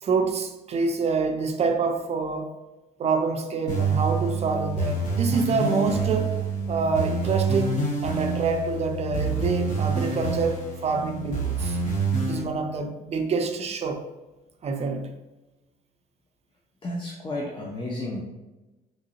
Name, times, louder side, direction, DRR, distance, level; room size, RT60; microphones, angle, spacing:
voice 1, 0.0-2.5 3.0-6.3 6.7-11.8 12.2-14.0 14.6-15.1, right 4 dB, 40° right, 5 dB, 0.4 m, -26 dB
sound 1, 3.7-12.4, right 3 dB, 50° left, 1.0 m, -27 dB
voice 2, 16.8-18.2, left 1 dB, 30° left, -2 dB, 0.6 m, -32 dB
3.7 x 2.9 x 2.8 m, 1.1 s
cardioid pair, 110°, 17 cm